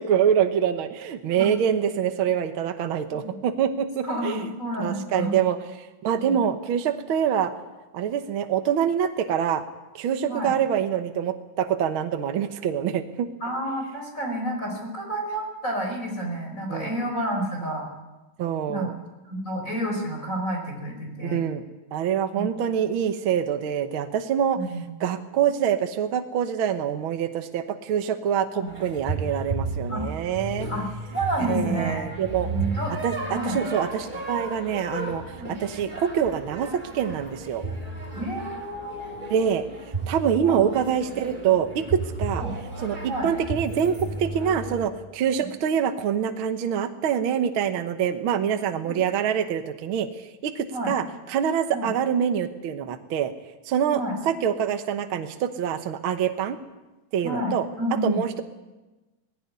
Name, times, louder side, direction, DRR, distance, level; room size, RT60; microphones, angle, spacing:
voice 1, 0.0-4.4 4.8-7.5 7.9-9.6 9.9-13.3 16.7-16.9 18.4-18.9 21.2-21.6 21.9-24.6 25.0-30.7 31.5-32.5 33.0-37.6 39.3-39.6 40.1-42.4 42.8-50.1 50.4-53.3 53.7-56.6 57.1-57.7 58.0-58.4, right 8 dB, 65° right, 7 dB, 1.3 m, -25 dB
voice 2, 4.0-5.3 6.2-6.4 10.3-10.5 13.4-17.8 18.7-18.9 19.3-21.4 22.4-22.5 24.5-24.8 28.5-28.7 29.9-30.0 30.7-30.9 31.1-32.0 32.4-32.9 33.3-33.6 35.4-35.5 38.1-39.4 40.4-40.6 42.4-42.5 43.1-43.3 45.3-45.5 50.7-50.9 51.7-51.9 53.9-54.2 57.2-58.2, right 1 dB, 25° left, 1 dB, 5.0 m, -30 dB
sound 1, 28.7-44.9, right 3 dB, 15° right, 3.1 m, -34 dB
19.0 x 17.0 x 9.6 m, 1.1 s
omnidirectional pair, 3.7 m